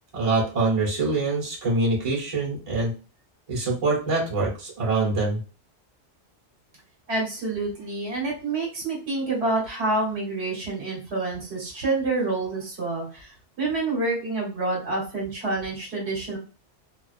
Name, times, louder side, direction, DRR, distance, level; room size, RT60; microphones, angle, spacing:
voice 1, 0.1-2.9 3.5-5.4, right 3 dB, 30° right, -3 dB, 0.9 m, -24 dB
voice 2, 7.1-13.3 13.6-16.4, right 2 dB, 65° right, -2 dB, 1.2 m, -27 dB
2.3 x 2.3 x 2.4 m, 0.34 s
omnidirectional pair, 1.2 m